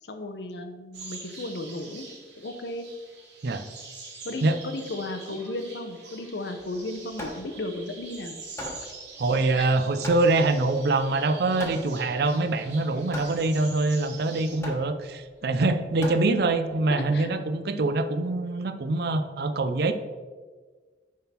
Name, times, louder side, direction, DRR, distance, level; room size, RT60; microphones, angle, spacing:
voice 1, 0.0-2.0 2.4-2.9 4.2-8.4 8.8-8.9 9.6-9.7 16.9-17.3, left 2 dB, 70° left, 7 dB, 0.7 m, -35 dB
sound 1, 0.9-14.6, right 4 dB, 90° right, 2.3 m, -45 dB
Hammer, 6.6-16.8, left 1 dB, 15° left, 1.2 m, -41 dB
voice 2, 9.2-19.9, right 2 dB, 60° right, 10 dB, 0.5 m, -24 dB
9.6 x 3.8 x 4.2 m, 1.5 s
head